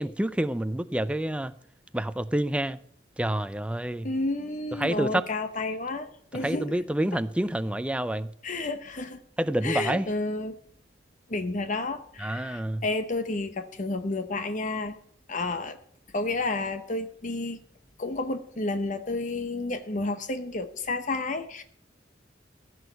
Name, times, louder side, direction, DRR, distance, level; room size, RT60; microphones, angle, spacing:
voice 1, 0.0-1.5 1.9-2.8 3.2-4.1 4.8-5.3 6.4-8.3 9.4-10.1 12.2-12.8, right 1 dB, 5° right, 0.5 m, -28 dB
voice 2, 4.0-6.8 8.4-9.2 9.6-10.5 11.3-15.0 15.3-15.8 16.1-17.6 18.0-21.6, left 2 dB, 45° left, 0.9 m, -31 dB
15.5 x 6.3 x 6.6 m
head